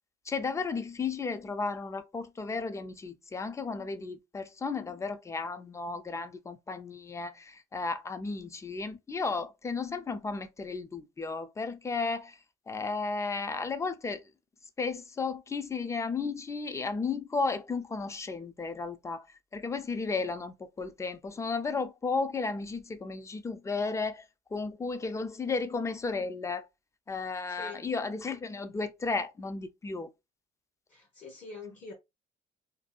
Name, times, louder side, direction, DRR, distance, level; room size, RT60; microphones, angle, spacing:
voice 1, 0.3-12.4 12.7-14.2 14.8-19.3 19.5-24.2 24.5-26.7 27.1-30.1, left 4 dB, 15° left, 0.4 m, -34 dB
voice 2, 27.5-27.8 30.9-31.9, left 3 dB, 45° left, 0.8 m, -45 dB
2.6 x 2.2 x 2.4 m
cardioid pair, 110°, 17 cm